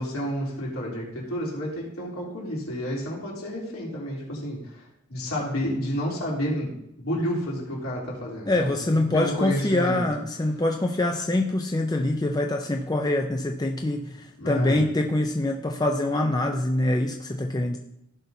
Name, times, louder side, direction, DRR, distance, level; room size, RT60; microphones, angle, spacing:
voice 1, 0.0-10.0 14.4-14.8, equal, 75° left, -5 dB, 3.5 m, -30 dB
voice 2, 8.5-17.8, left 1 dB, 20° left, 2 dB, 0.5 m, -25 dB
15.5 x 5.8 x 2.7 m, 0.82 s
head